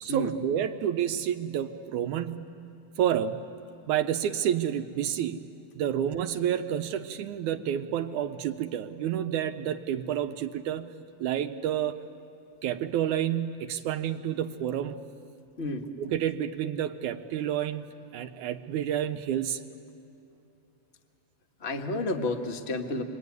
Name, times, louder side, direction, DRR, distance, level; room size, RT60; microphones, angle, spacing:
voice 1, 0.0-2.5 3.0-3.5 3.9-5.4 5.8-10.9 11.2-12.0 12.6-15.0 16.0-17.9 18.1-19.6, right 10 dB, 80° right, 8 dB, 2.2 m, -29 dB
voice 2, 15.6-15.9 21.6-23.0, left 2 dB, 45° left, 5 dB, 0.8 m, -31 dB
26.5 x 23.0 x 9.5 m, 2.8 s
omnidirectional pair, 3.6 m